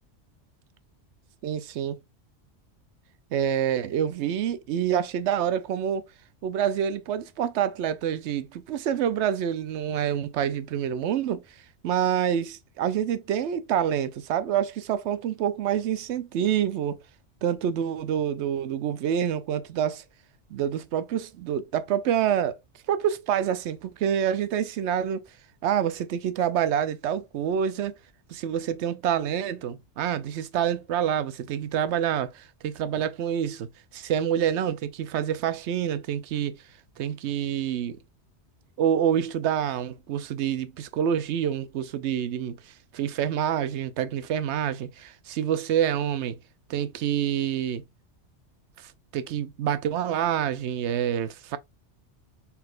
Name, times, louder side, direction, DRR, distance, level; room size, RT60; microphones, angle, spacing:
voice 1, 1.4-2.0 3.3-6.1 6.4-11.6 11.8-17.0 17.4-20.0 20.5-22.6 22.9-25.2 25.6-28.0 28.3-33.7 33.9-36.6 37.0-38.0 38.8-46.4 46.7-47.8 48.8-51.6, right 9 dB, 75° right, 0.9 m, -27 dB
4.2 x 4.1 x 2.4 m
omnidirectional pair, 1.2 m